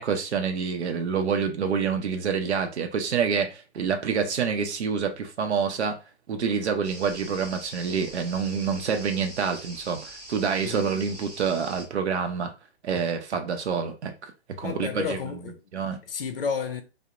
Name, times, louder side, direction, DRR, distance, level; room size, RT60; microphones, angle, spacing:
voice 1, 0.0-6.0 6.3-12.5 12.8-14.3 14.6-15.2 15.7-16.0, right 6 dB, 80° right, 0.6 m, -27 dB
sound 1, 6.8-11.9, right 1 dB, 40° right, 0.7 m, -43 dB
voice 2, 14.6-15.6 16.1-16.8, left 6 dB, 60° left, 0.5 m, -31 dB
2.8 x 2.0 x 2.4 m
hypercardioid pair, 175°, 33 cm